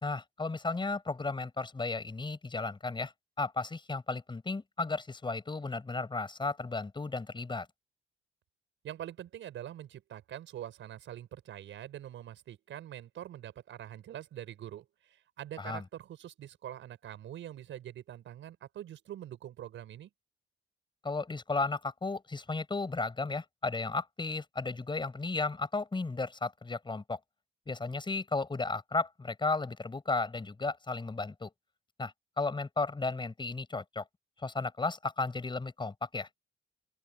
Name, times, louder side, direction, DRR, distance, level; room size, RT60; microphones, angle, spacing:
voice 1, 0.0-3.1 3.4-7.7 15.6-15.8 21.0-27.2 27.7-31.5 32.0-34.0 34.4-36.3, left 3 dB, 25° left, 5.3 m, -34 dB
voice 2, 8.8-20.1, right 11 dB, 75° right, 5.9 m, -44 dB
open air
cardioid pair, 90°, 20 cm